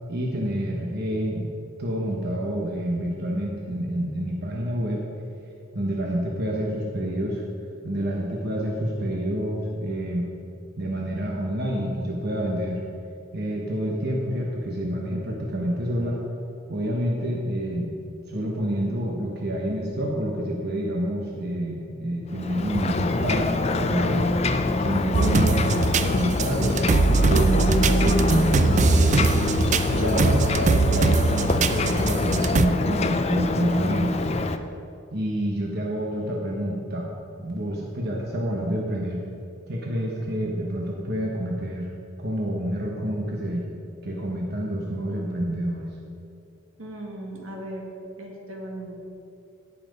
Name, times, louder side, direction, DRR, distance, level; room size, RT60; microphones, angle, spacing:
voice 1, 0.1-1.5 1.8-5.0 5.7-7.4 7.8-10.3 10.8-12.8 13.3-16.2 16.7-17.9 18.3-24.4 24.8-26.8 27.3-29.5 29.9-34.3 35.1-37.1 37.4-39.2 39.7-41.9 42.2-43.7 44.0-45.9, equal, 50° right, -2 dB, 1.1 m, -28 dB
Ocean, 22.3-34.6, left 2 dB, 30° left, 0.5 m, -25 dB
sound 1, 25.1-32.7, right 3 dB, 35° right, 0.4 m, -22 dB
voice 2, 46.8-47.9 48.2-49.0, right 1 dB, 80° right, 0 dB, 2.0 m, -37 dB
17.0 x 5.9 x 5.3 m, 2.6 s
head